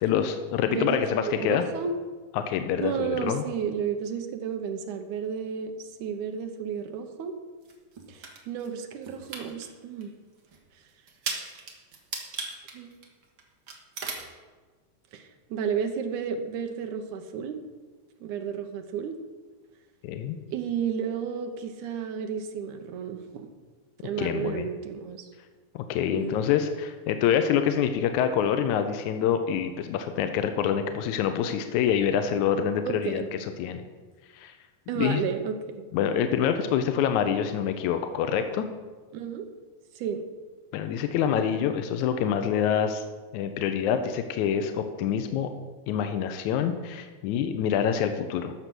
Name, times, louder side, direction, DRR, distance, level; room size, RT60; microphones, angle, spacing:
voice 1, 0.0-1.7 2.3-3.4 20.0-20.4 24.2-24.7 25.8-33.2 33.6-33.8 34.3-34.5 35.0-35.2 35.9-38.7 40.7-43.0 43.3-45.5 45.9-48.5, left 8 dB, 80° left, 8 dB, 1.8 m, -26 dB
voice 2, 0.7-2.0 2.7-7.4 8.1-10.1 12.7-12.9 15.1-17.6 18.2-19.2 20.5-23.5 24.0-25.3 26.1-26.5 32.9-33.3 34.9-35.9 39.1-39.5 40.0-40.3, right 7 dB, 70° right, 6 dB, 2.2 m, -32 dB
sound 1, 7.6-8.7 9.0-9.7 10.0-10.1 10.5-10.6 11.1-13.4 13.7-14.3, right 4 dB, 50° right, 1.7 m, -36 dB
13.0 x 6.7 x 6.1 m, 1.4 s
omnidirectional pair, 4.0 m